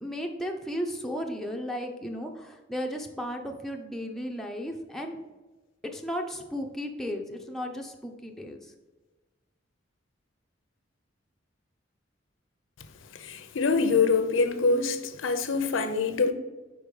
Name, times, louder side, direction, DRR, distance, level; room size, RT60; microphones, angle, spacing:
voice 1, 0.0-5.2 5.9-8.7, equal, ahead, 0.5 m, -35 dB
voice 2, 13.2-16.3, left 4 dB, 75° left, 0.6 m, -25 dB
4.8 x 4.5 x 5.2 m
head